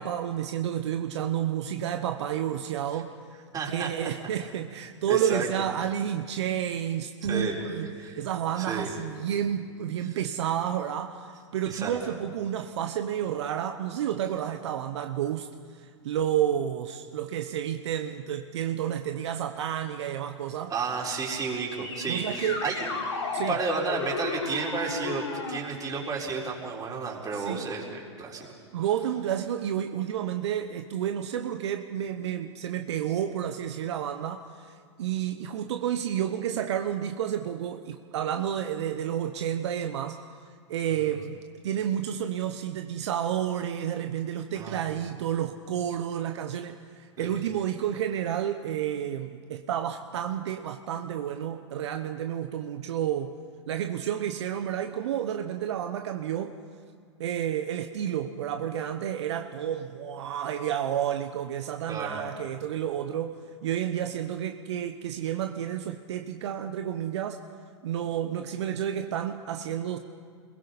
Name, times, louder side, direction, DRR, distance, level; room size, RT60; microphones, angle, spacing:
voice 1, 0.0-3.2 3.7-15.5 15.7-20.7 22.1-22.6 23.3-23.6 27.3-27.7 28.7-40.2 40.7-41.4 41.6-53.3 53.7-56.6 57.2-67.4 67.8-70.0, right 10 dB, 70° right, 7 dB, 0.9 m, -30 dB
voice 2, 3.5-3.9 5.1-5.5 7.2-7.6 8.0-8.2 8.6-8.9 10.1-10.2 11.7-12.0 20.7-22.9 23.5-28.5 40.9-41.0 44.5-44.8 47.2-47.3 61.9-62.2, right 5 dB, 25° right, -2 dB, 4.6 m, -32 dB
sound 1, 21.8-25.6, left 4 dB, 75° left, 4.0 m, -33 dB
30.0 x 21.5 x 4.2 m, 2.1 s
hypercardioid pair, 105°, 15 cm